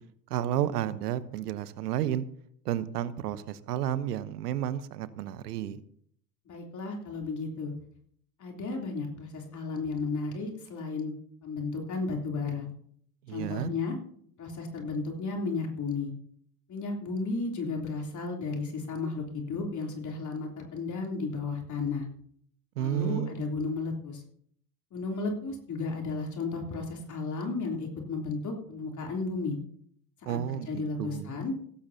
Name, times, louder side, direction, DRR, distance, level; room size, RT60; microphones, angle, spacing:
voice 1, 0.3-2.2 2.6-5.8 13.3-13.7 22.8-23.3 30.3-31.4, right 11 dB, 75° right, 15 dB, 1.0 m, -31 dB
voice 2, 6.4-7.7 8.4-11.1 11.4-12.7 13.3-14.0 14.4-16.1 16.7-22.1 22.8-24.2 24.9-29.6 30.2-30.4 30.7-31.5, left 3 dB, 40° left, 1 dB, 3.3 m, -33 dB
17.0 x 15.0 x 2.8 m, 0.64 s
hypercardioid pair, 70°, 47 cm